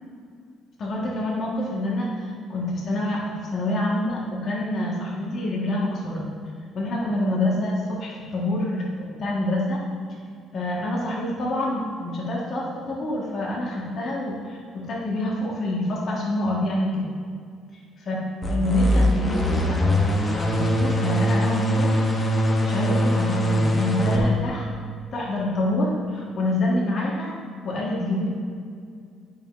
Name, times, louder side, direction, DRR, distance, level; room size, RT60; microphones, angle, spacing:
voice 1, 0.8-6.3 6.7-9.8 10.5-17.1 18.0-21.9 22.6-24.7 25.1-27.3 27.6-28.3, left 1 dB, 55° left, -4 dB, 1.5 m, -26 dB
sound 1, 18.4-24.2, equal, 30° left, 1.2 m, -22 dB
8.9 x 5.7 x 2.6 m, 2.2 s
supercardioid pair, 80°, 0 cm